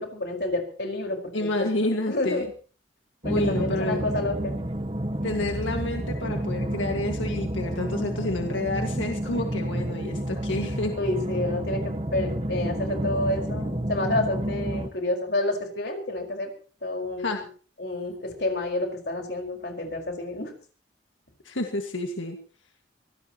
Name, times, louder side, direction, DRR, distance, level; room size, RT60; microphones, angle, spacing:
voice 1, 0.0-2.5 3.2-4.6 11.0-16.5 16.8-17.4 17.8-20.5, left 2 dB, 60° left, 2 dB, 5.0 m, -29 dB
voice 2, 1.3-2.5 3.2-4.1 5.2-10.9 17.2-17.4 21.4-22.4, left 2 dB, 85° left, 3 dB, 1.9 m, -29 dB
sound 1, 3.2-14.9, right 1 dB, 30° right, 1.5 m, -30 dB
25.0 x 17.5 x 3.0 m, 0.40 s
head